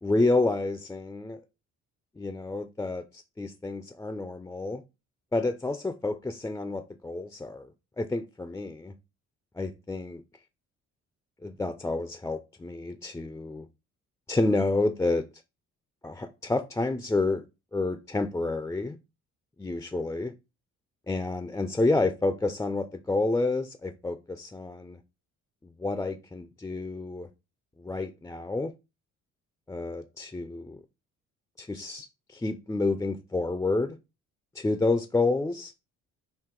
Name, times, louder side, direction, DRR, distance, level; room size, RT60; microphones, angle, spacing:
voice 1, 0.0-1.4 2.2-4.8 5.3-7.7 8.0-8.9 9.6-10.2 11.4-13.7 14.3-15.2 16.0-17.4 17.7-19.0 19.6-20.3 21.1-25.0 25.6-27.3 27.8-28.7 29.7-30.8 31.6-34.0 34.6-35.7, left 2 dB, 10° left, 0.3 m, -29 dB
4.6 x 2.8 x 3.7 m
cardioid pair, 90°, 30 cm